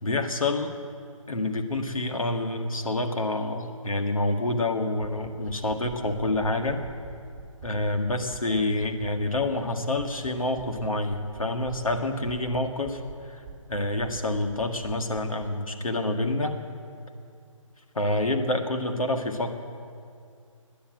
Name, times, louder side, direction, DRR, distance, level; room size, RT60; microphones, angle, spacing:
voice 1, 0.0-0.7 1.3-6.8 7.6-13.4 13.7-16.5 18.0-19.5, left 2 dB, 85° left, 4 dB, 1.8 m, -27 dB
sound 1, 5.0-9.7 9.9-10.3 10.6-13.1 13.4-15.5, right 5 dB, 10° right, 2.4 m, -44 dB
15.5 x 10.0 x 8.9 m, 2.3 s
figure-of-eight pair, 160°, 17 cm